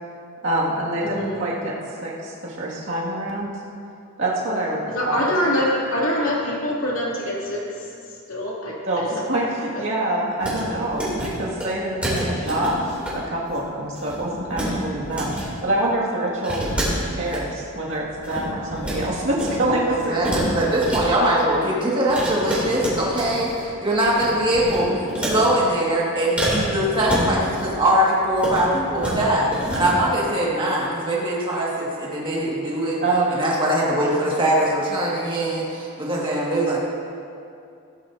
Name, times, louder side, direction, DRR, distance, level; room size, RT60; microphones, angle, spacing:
voice 1, 0.4-1.7 2.0-3.5 4.2-5.3 8.9-16.6 17.1-20.6 33.0-33.5, right 1 dB, 55° right, -6 dB, 2.2 m, -26 dB
voice 2, 4.9-7.6 8.3-8.7, equal, 60° left, -5 dB, 2.7 m, -24 dB
sound 1, 10.4-10.6 10.9-11.3 11.6-11.7 12.0-13.1 13.4-13.6 13.9-14.7 15.0-15.4 16.4-17.4 17.9-19.0 19.3-19.6 19.9-21.0 22.1-23.6 23.9-24.3 24.5-25.5 26.4-27.7 28.3-28.6 28.9-29.2 29.5-29.9, right 1 dB, 5° right, 2.9 m, -28 dB
voice 3, 19.9-33.0 33.3-36.8, right 1 dB, 20° right, -5 dB, 1.9 m, -22 dB
16.5 x 11.0 x 2.7 m, 2.5 s
head